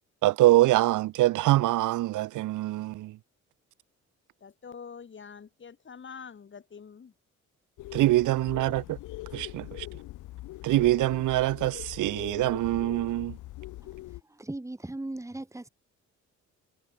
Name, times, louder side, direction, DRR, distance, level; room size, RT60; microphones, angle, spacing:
voice 1, 0.2-3.2 7.9-9.0 9.3-9.9 10.6-13.4, right 16 dB, 85° right, 0.9 m, -24 dB
voice 2, 4.4-7.1 8.2-8.3 8.7-8.8, left 6 dB, 40° left, 3.2 m, -46 dB
sound 1, 7.8-14.2, left 16 dB, 85° left, 1.2 m, -42 dB
voice 3, 13.8-15.7, right 2 dB, 10° right, 2.7 m, -39 dB
cardioid pair, 90°, 30 cm